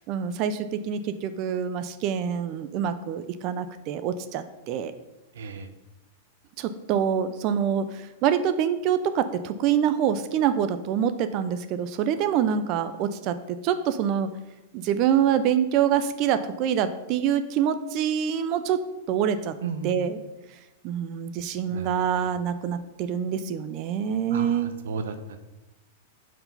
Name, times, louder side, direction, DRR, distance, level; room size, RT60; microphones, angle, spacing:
voice 1, 0.0-4.9 6.6-14.3 14.7-18.8 19.1-19.5 19.8-20.2 20.8-24.8, right 8 dB, 30° right, 11 dB, 0.3 m, -26 dB
voice 2, 5.3-5.7 19.6-19.9 21.7-21.9 24.3-25.4, right 4 dB, 80° right, 7 dB, 0.7 m, -34 dB
5.8 x 4.6 x 5.3 m, 0.96 s
supercardioid pair, 175°, 0 cm